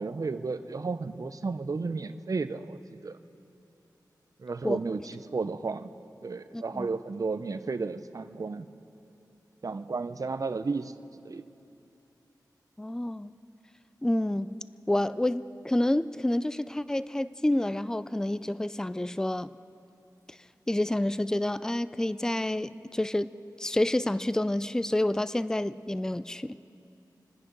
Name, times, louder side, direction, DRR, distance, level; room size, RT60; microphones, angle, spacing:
voice 1, 0.0-3.2 4.4-5.9 6.2-8.7 9.6-10.9 11.2-11.4, right 4 dB, 50° right, 11 dB, 0.6 m, -33 dB
voice 2, 6.5-6.9 12.8-13.3 14.0-14.6 14.9-19.5 20.7-23.3 23.6-26.6, left 1 dB, 10° left, 16 dB, 0.4 m, -28 dB
27.5 x 9.9 x 5.3 m, 2.7 s
wide cardioid pair, 65°, 7 cm